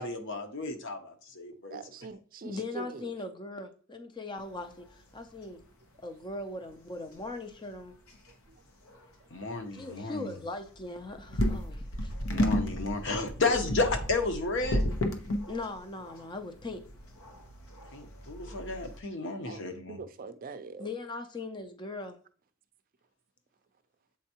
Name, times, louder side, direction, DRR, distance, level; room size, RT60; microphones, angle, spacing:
voice 1, 0.0-1.8 9.3-10.3 12.3-14.8 17.9-20.0, left 3 dB, 60° left, 0.9 m, -32 dB
voice 2, 1.7-3.1 19.4-20.9, right 4 dB, 40° right, 0.4 m, -43 dB
voice 3, 2.4-5.6 6.0-7.9 9.7-12.1 15.5-16.8 20.8-22.2, left 2 dB, 20° left, 0.5 m, -39 dB
sound 1, 4.4-4.8 5.1-5.2 5.4-5.7 6.4-6.5 7.1-7.3 7.7-7.8 8.1-8.5 8.9-9.1 9.4-9.5 9.8-9.9 10.6-19.0, equal, 90° left, 0.9 m, -33 dB
7.4 x 4.4 x 2.9 m
head